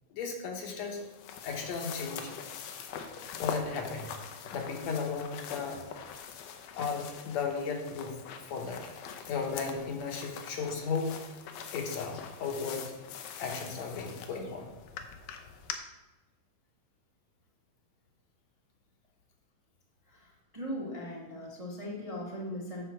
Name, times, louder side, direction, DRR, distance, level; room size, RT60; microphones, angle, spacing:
voice 1, 0.1-1.1 1.4-2.4 3.1-4.1 4.5-5.9 6.8-8.2 8.5-8.8 9.3-11.2 11.7-12.9 13.4-14.7, left 5 dB, 65° left, 2 dB, 2.2 m, -35 dB
sound 1, 0.6-15.8, left 7 dB, 85° left, 2.2 m, -43 dB
voice 2, 20.1-22.8, equal, 60° right, -4 dB, 0.3 m, -39 dB
9.4 x 4.4 x 6.3 m, 1.1 s
omnidirectional pair, 3.5 m